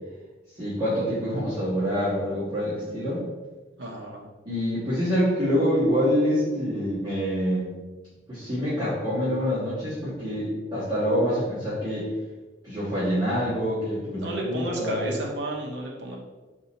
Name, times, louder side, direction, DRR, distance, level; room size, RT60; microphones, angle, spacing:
voice 1, 0.6-3.2 4.4-7.7 8.3-12.1 12.6-15.0, equal, 20° right, -14 dB, 1.5 m, -26 dB
voice 2, 3.8-4.2 14.1-16.2, right 1 dB, 70° right, -1 dB, 0.9 m, -32 dB
3.9 x 2.7 x 4.1 m, 1.2 s
head